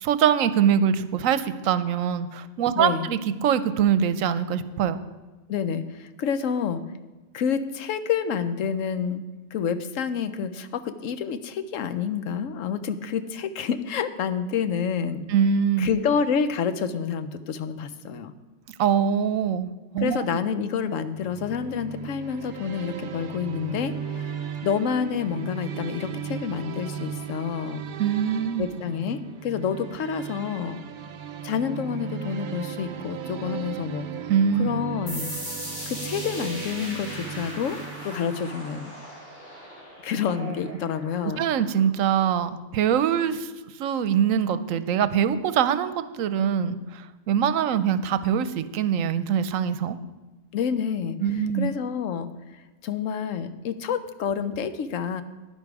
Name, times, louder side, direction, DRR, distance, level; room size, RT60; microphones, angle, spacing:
voice 1, 0.0-5.0 15.3-15.9 18.8-19.7 19.9-20.2 28.0-28.6 34.3-34.7 40.4-40.5 41.4-43.5 43.8-50.0 51.2-51.7, right 8 dB, 85° right, 12 dB, 1.0 m, -23 dB
voice 2, 2.7-3.1 5.5-6.8 7.3-9.2 9.5-15.2 15.8-18.3 20.0-27.8 28.6-30.8 31.4-34.1 34.6-35.3 35.9-38.9 40.0-41.5 50.5-51.2 51.5-55.2, left 7 dB, 75° left, 11 dB, 1.0 m, -28 dB
sound 1, 21.1-38.9, right 8 dB, 60° right, 0.5 m, -37 dB
sound 2, 35.1-42.4, equal, 45° left, 3.8 m, -39 dB
10.5 x 10.0 x 4.7 m, 1.1 s
omnidirectional pair, 1.4 m